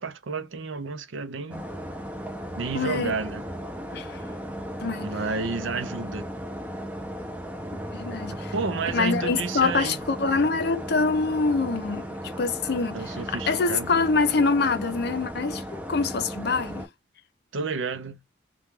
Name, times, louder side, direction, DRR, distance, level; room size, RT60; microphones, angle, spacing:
voice 1, 0.0-1.7 2.6-3.4 5.0-6.3 8.3-10.0 12.9-13.9 17.5-18.2, right 4 dB, 75° right, 0.5 m, -31 dB
sound 1, 1.5-16.9, equal, 5° right, 0.4 m, -36 dB
voice 2, 2.7-3.1 3.9-4.2 4.8-5.1 7.9-8.5 8.9-12.1 12.4-16.9, left 4 dB, 55° left, 0.5 m, -25 dB
2.3 x 2.3 x 3.0 m
head